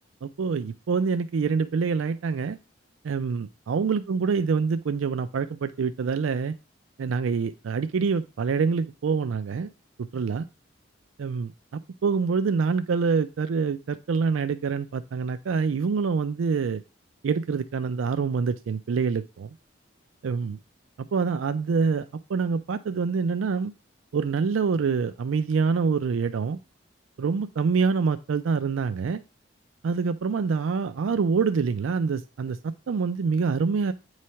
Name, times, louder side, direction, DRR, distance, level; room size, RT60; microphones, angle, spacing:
voice 1, 0.2-2.6 3.0-6.6 7.0-9.7 10.0-10.5 11.2-16.8 17.2-19.6 20.2-20.6 21.0-23.7 24.1-26.6 27.2-29.2 29.8-33.9, right 5 dB, 90° right, 10 dB, 0.4 m, -26 dB
8.4 x 3.2 x 5.6 m, 0.30 s
head